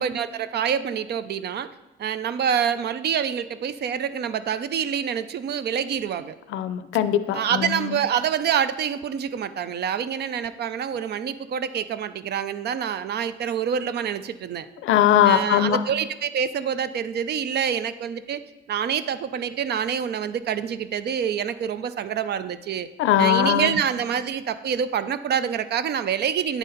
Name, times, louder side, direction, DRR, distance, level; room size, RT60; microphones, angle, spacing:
voice 1, 0.0-1.7 2.0-6.4 7.3-14.7 15.2-18.4 18.7-22.9 23.2-26.6, right 8 dB, 55° right, 13 dB, 0.4 m, -26 dB
voice 2, 6.5-7.4 14.8-15.8 23.0-23.7, left 11 dB, 85° left, 12 dB, 0.5 m, -19 dB
9.1 x 4.1 x 3.9 m, 1.0 s
cardioid pair, 90°, 20 cm